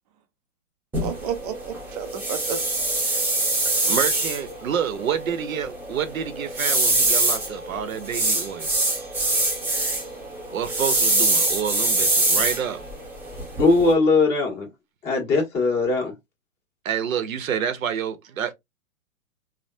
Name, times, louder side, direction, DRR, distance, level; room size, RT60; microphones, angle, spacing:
sound 1, 0.9-13.9, right 2 dB, 5° right, 0.8 m, -24 dB
voice 1, 1.0-2.6, right 8 dB, 30° right, 0.4 m, -31 dB
voice 2, 3.8-8.7 10.5-12.8 16.8-18.5, right 8 dB, 75° right, 0.7 m, -28 dB
voice 3, 13.6-14.7 15.0-16.1, left 3 dB, 25° left, 1.5 m, -20 dB
3.2 x 2.0 x 2.6 m
hypercardioid pair, 130°, 41 cm